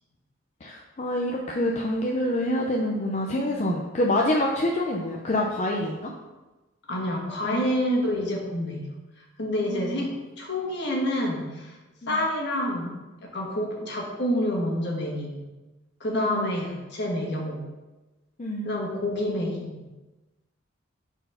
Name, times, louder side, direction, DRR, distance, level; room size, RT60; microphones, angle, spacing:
voice 1, 0.6-6.1 7.4-7.7 9.6-10.0 12.0-12.2 16.1-16.5 18.4-18.7, left 1 dB, 35° left, -1 dB, 0.6 m, -27 dB
voice 2, 6.9-8.9 9.2-11.8 12.1-12.9 13.2-15.3 16.0-17.6 18.6-19.7, left 1 dB, 60° left, -1 dB, 1.6 m, -28 dB
5.7 x 4.5 x 5.5 m, 1.1 s
head